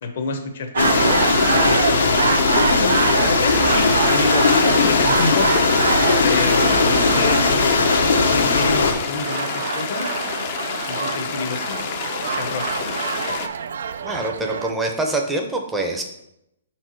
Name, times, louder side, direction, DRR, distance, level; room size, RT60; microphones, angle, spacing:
voice 1, 0.0-2.5 3.2-5.7 6.2-10.1 10.9-13.3, left 4 dB, 55° left, 5 dB, 1.0 m, -28 dB
sound 1, 0.7-14.7, right 7 dB, 70° right, 0.3 m, -25 dB
sound 2, 0.8-8.9, left 4 dB, 80° left, 1.1 m, -18 dB
sound 3, 3.6-13.5, left 7 dB, 40° left, 0.6 m, -29 dB
voice 2, 14.0-16.0, right 2 dB, 5° right, 3 dB, 0.7 m, -25 dB
5.5 x 4.5 x 4.5 m, 0.82 s
hypercardioid pair, 155°, 0 cm